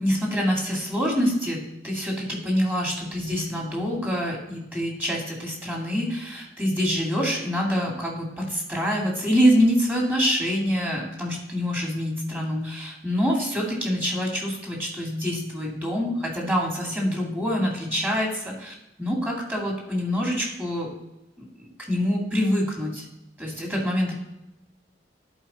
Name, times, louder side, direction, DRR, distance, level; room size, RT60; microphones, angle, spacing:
voice 1, 0.0-20.9 21.4-23.0 23.4-24.1, equal, 10° right, -2 dB, 2.5 m, -26 dB
11.0 x 4.8 x 4.3 m, 0.90 s
head